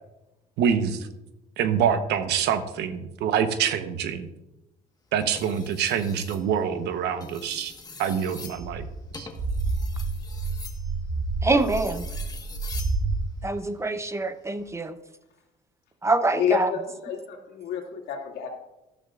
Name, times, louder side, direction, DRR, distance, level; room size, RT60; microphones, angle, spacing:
voice 1, 0.6-1.1 1.6-4.3 5.1-7.7 8.0-8.9 9.2-9.3, right 8 dB, 80° right, 10 dB, 1.0 m, -25 dB
sound 1, 5.2-6.4 7.1-13.0 14.4-14.7, left 4 dB, 20° left, 1.4 m, -43 dB
sound 2, 8.5-13.2, right 3 dB, 50° right, 2.1 m, -29 dB
voice 2, 11.4-12.1 13.4-15.0 16.0-16.7, right 2 dB, 15° right, 11 dB, 0.7 m, -25 dB
voice 3, 16.3-18.5, left 8 dB, 75° left, 0 dB, 2.5 m, -29 dB
14.0 x 12.0 x 2.5 m, 0.96 s
cardioid pair, 110°, 17 cm